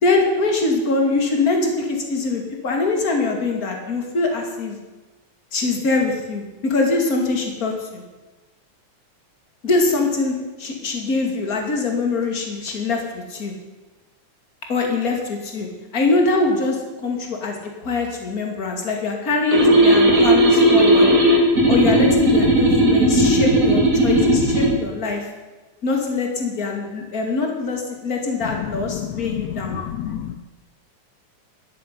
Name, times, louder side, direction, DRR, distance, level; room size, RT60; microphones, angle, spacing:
voice 1, 0.0-4.8 5.5-8.0 9.6-13.5 14.7-15.7 15.9-21.1 21.7-25.3 25.8-29.8, left 3 dB, 30° left, 2 dB, 2.7 m, -23 dB
sound 1, 19.5-24.7, right 1 dB, 25° right, 3.2 m, -15 dB
voice 2, 28.9-30.4, left 10 dB, 75° left, 8 dB, 2.0 m, -29 dB
12.0 x 9.4 x 9.6 m, 1.2 s
omnidirectional pair, 3.3 m